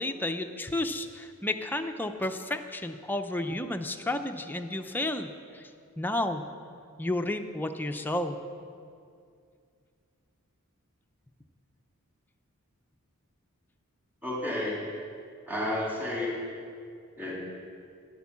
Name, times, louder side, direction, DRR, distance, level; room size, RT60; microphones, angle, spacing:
voice 1, 0.0-5.7 6.0-6.5 7.0-8.4, left 1 dB, 10° left, 6 dB, 0.5 m, -32 dB
voice 2, 14.2-14.8 15.5-16.4 17.2-17.3, left 1 dB, 10° right, -5 dB, 2.9 m, -31 dB
10.5 x 8.2 x 7.3 m, 2.3 s
head